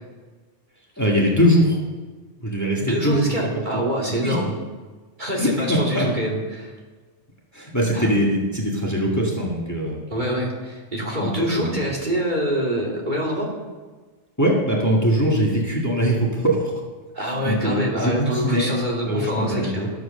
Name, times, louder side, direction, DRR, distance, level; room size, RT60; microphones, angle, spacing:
voice 1, 1.0-1.8 2.4-3.3 3.7-3.8 4.1-4.4 5.4-6.1 7.5-10.0 11.2-11.3 11.6-11.8 14.4-16.7 17.2-18.7 19.0-19.9, equal, 15° left, -3 dB, 2.0 m, -21 dB
voice 2, 2.8-4.5 5.2-6.7 7.9-8.0 10.1-13.5 17.1-19.9, equal, 40° right, -2 dB, 2.6 m, -25 dB
12.5 x 7.9 x 6.5 m, 1.3 s
omnidirectional pair, 1.2 m